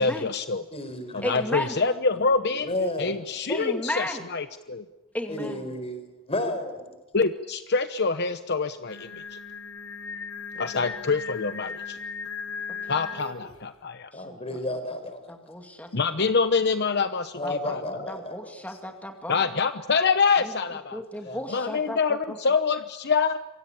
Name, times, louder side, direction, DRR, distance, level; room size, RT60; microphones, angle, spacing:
voice 1, 0.0-0.6 1.1-2.7 3.0-4.8 7.1-9.4 10.6-12.0 12.9-14.1 15.9-17.8 19.3-21.0 21.5-23.4, left 4 dB, 55° left, 1.0 m, -26 dB
voice 2, 0.7-3.2 5.3-6.9 14.1-15.4 17.3-18.8 21.2-21.6, left 1 dB, 30° left, 4.9 m, -33 dB
voice 3, 1.2-1.8 3.5-4.3 5.1-5.6 10.8-10.9 14.1-14.4 15.3-16.3 17.4-17.7 18.1-19.5 20.4-20.5 20.9-22.4, left 1 dB, 5° left, 2.4 m, -34 dB
Singing, 8.9-13.6, left 5 dB, 85° left, 4.0 m, -37 dB
27.5 x 24.5 x 8.7 m
head